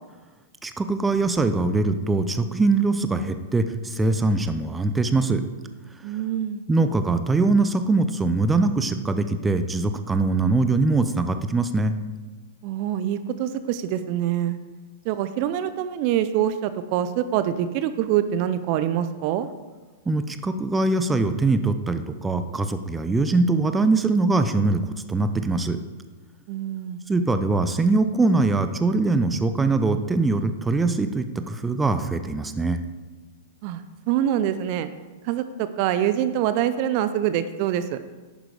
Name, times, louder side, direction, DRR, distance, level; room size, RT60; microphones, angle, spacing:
voice 1, 0.6-5.4 6.7-11.9 20.1-24.8 25.1-25.8 27.1-32.8, right 3 dB, 10° right, 9 dB, 0.7 m, -22 dB
voice 2, 6.0-6.6 12.6-14.6 15.0-19.5 26.5-27.0 33.6-34.9 35.2-38.0, right 11 dB, 45° right, 11 dB, 0.7 m, -25 dB
11.0 x 8.9 x 4.9 m, 1.3 s
figure-of-eight pair, 105°, 0 cm